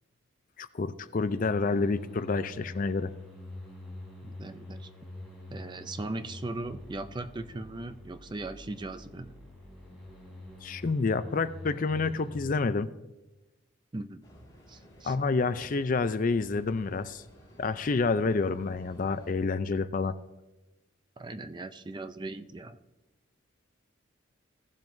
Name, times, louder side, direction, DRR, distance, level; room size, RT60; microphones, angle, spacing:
voice 1, 0.6-3.1 10.6-12.9 15.0-17.2 17.6-20.1, left 4 dB, 40° left, 13 dB, 0.4 m, -28 dB
sound 1, 1.3-12.5, left 1 dB, ahead, 3.3 m, -46 dB
voice 2, 4.2-4.9 5.5-9.3 13.9-14.2 14.7-15.2 21.2-22.8, right 2 dB, 20° right, 10 dB, 0.4 m, -39 dB
sound 2, 14.2-19.3, equal, 20° left, 2.1 m, -54 dB
15.5 x 7.4 x 2.6 m, 1.0 s
head